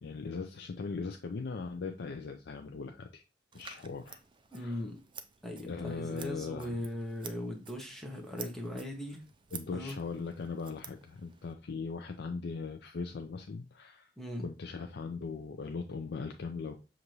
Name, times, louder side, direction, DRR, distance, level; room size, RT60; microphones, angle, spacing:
voice 1, 0.0-3.2 3.5-4.2 4.5-4.8 5.7-6.8 9.5-14.1 14.4-16.8, left 4 dB, 60° left, 5 dB, 0.4 m, -39 dB
Scissors, 3.5-11.5, right 7 dB, 25° right, 0.4 m, -51 dB
voice 2, 4.5-5.0 5.4-9.2 9.7-10.0 14.2-14.5, left 1 dB, ahead, 0 dB, 0.7 m, -39 dB
6.6 x 2.5 x 2.9 m, 0.31 s
head